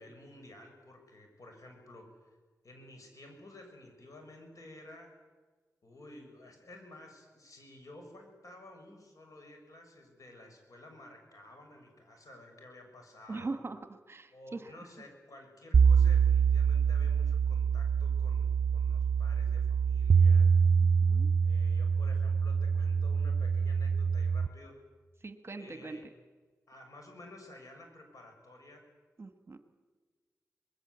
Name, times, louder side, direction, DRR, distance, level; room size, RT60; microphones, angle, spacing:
voice 1, 0.0-2.3 2.6-5.1 5.8-13.6 14.3-20.5 21.4-24.8 25.6-26.1 26.7-28.8, left 1 dB, 60° left, 3 dB, 6.7 m, -53 dB
voice 2, 13.3-13.8 14.1-14.7 20.8-21.3 25.2-26.0 29.2-29.6, right 3 dB, 40° right, 9 dB, 1.5 m, -41 dB
sound 1, 15.7-24.5, right 6 dB, 55° right, 0.7 m, -25 dB
25.5 x 20.5 x 8.2 m, 1.4 s
wide cardioid pair, 80°, 6 cm